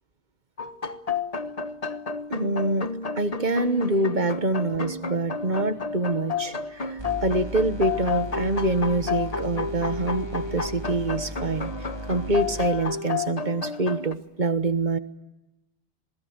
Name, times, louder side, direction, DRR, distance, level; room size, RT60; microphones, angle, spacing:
sound 1, 0.6-14.1, left 4 dB, 35° left, 1.2 m, -31 dB
voice 1, 2.3-11.7 12.1-15.0, right 2 dB, 45° right, 10 dB, 1.4 m, -26 dB
sound 2, 7.0-12.7, left 1 dB, 20° right, 3.2 m, -37 dB
27.5 x 20.5 x 7.9 m, 0.95 s
omnidirectional pair, 1.1 m